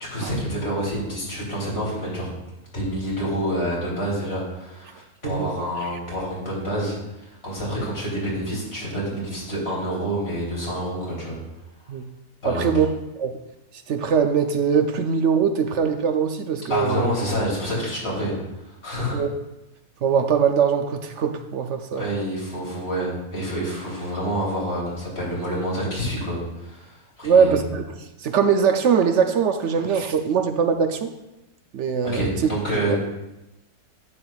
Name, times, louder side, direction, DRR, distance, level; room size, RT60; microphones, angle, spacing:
voice 1, 0.0-2.3 2.7-11.4 12.4-12.7 16.7-18.4 18.6-19.2 21.9-27.6 32.0-33.0, equal, 40° left, -6 dB, 3.3 m, -28 dB
voice 2, 12.4-12.9 13.2-13.4 13.9-17.1 19.1-19.3 20.0-22.1 27.2-27.8 28.2-31.1 31.7-32.3 32.9-33.0, right 6 dB, 65° right, 6 dB, 0.7 m, -21 dB
10.5 x 7.9 x 2.3 m, 0.95 s
omnidirectional pair, 1.6 m